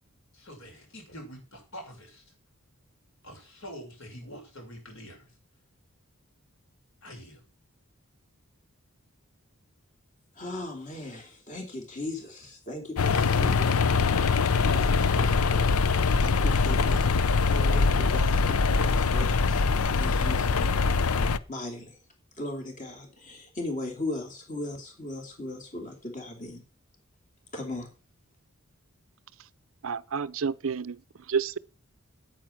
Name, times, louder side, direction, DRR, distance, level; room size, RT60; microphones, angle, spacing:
voice 1, 0.3-2.2 3.2-5.3 7.0-7.4, equal, 65° left, 5.6 m, -45 dB
voice 2, 10.4-15.5 16.2-20.7 21.5-21.9 22.4-26.6 27.5-27.9, left 2 dB, 35° left, 2.9 m, -38 dB
sound 1, 13.0-21.4, left 4 dB, 85° left, 0.6 m, -23 dB
voice 3, 29.8-31.0 31.3-31.6, right 6 dB, 70° right, 0.6 m, -29 dB
9.3 x 9.2 x 5.9 m
head